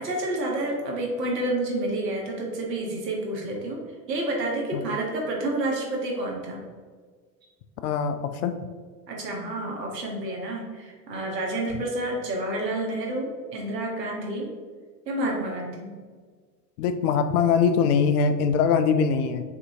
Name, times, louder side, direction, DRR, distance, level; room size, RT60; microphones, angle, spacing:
voice 1, 0.0-3.8 4.1-6.6 9.1-14.5 15.1-15.9, right 1 dB, 80° right, -1 dB, 1.2 m, -29 dB
voice 2, 7.8-8.5 16.8-19.4, left 6 dB, 65° left, 9 dB, 0.6 m, -22 dB
6.5 x 2.7 x 2.7 m, 1.5 s
hypercardioid pair, 80°, 49 cm